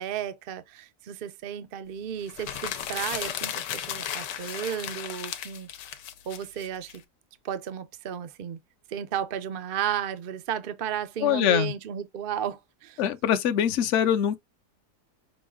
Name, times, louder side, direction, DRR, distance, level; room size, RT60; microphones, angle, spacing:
voice 1, 0.0-5.7 6.3-7.0 7.4-8.6 8.9-13.0, right 9 dB, 80° right, 0.4 m, -33 dB
sound 1, 2.3-7.0, left 10 dB, 85° left, 1.3 m, -35 dB
voice 2, 11.2-11.7 13.0-14.4, left 9 dB, 60° left, 0.8 m, -23 dB
6.2 x 2.4 x 3.5 m
omnidirectional pair, 1.8 m